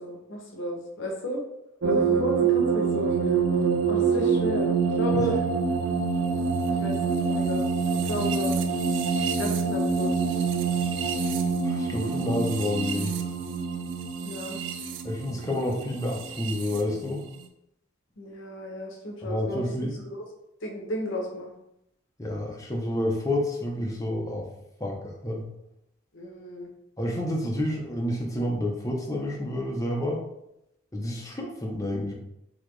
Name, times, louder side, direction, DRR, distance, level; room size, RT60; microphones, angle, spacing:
voice 1, 0.0-1.4 1.8-3.4 3.8-5.4 6.7-7.6 7.9-8.6 9.4-10.3 14.2-14.6 18.2-19.6 20.6-21.5 26.1-26.7, equal, 65° left, 0 dB, 0.8 m, -33 dB
sound 1, 1.8-16.8, right 5 dB, 65° right, 0.4 m, -26 dB
voice 2, 11.6-13.2 15.0-17.2 19.2-20.0 22.2-24.5 24.8-25.5 27.0-30.2 30.9-32.1, left 1 dB, 15° left, -1 dB, 0.6 m, -29 dB
4.0 x 2.8 x 3.1 m, 0.83 s
head